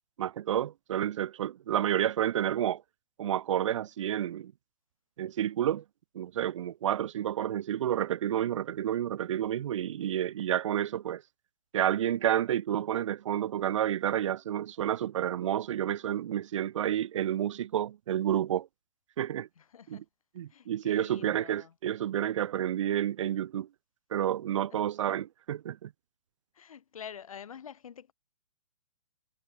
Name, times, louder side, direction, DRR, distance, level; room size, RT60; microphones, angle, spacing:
voice 1, 0.2-2.8 3.2-4.5 5.2-5.8 6.1-11.2 11.7-18.7 19.2-19.5 19.9-20.0 20.4-23.7 24.1-25.9, right 11 dB, 60° right, 0.9 m, -30 dB
voice 2, 19.6-20.0 20.5-21.7 24.7-24.8 26.5-28.1, left 8 dB, 70° left, 2.7 m, -47 dB
hypercardioid pair, 140°, 18 cm